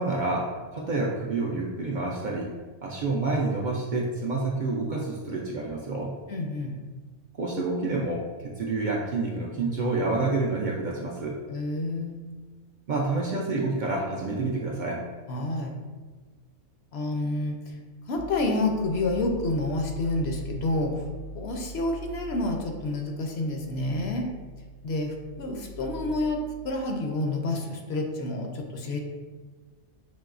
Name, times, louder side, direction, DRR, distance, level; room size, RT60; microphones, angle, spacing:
voice 1, 0.0-2.5 2.8-6.2 7.4-11.4 12.9-15.0, right 3 dB, 70° right, -2 dB, 0.4 m, -28 dB
voice 2, 6.3-6.8 11.5-12.2 15.3-15.7 16.9-17.8 18.1-21.0 21.3-24.3 24.8-29.0, left 2 dB, 65° left, 2 dB, 0.7 m, -29 dB
sound 1, 18.1-26.7, right 3 dB, 90° left, 1.9 m, -42 dB
5.3 x 2.9 x 2.4 m, 1.4 s
omnidirectional pair, 1.3 m